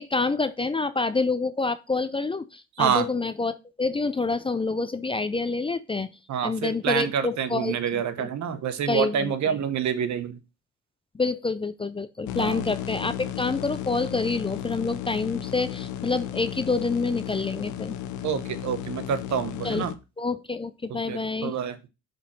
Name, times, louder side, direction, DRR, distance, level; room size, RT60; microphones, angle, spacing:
voice 1, 0.0-6.1 6.4-8.3 8.9-9.6 11.1-18.0 19.6-19.9 20.2-21.6, left 3 dB, 20° left, 0.5 m, -27 dB
voice 2, 6.3-10.4 12.4-12.6 18.2-19.9 20.9-21.8, right 8 dB, 65° right, 1.0 m, -27 dB
sound 1, 12.3-19.9, left 11 dB, 75° left, 0.8 m, -34 dB
5.2 x 4.2 x 6.0 m
cardioid pair, 90°, 30 cm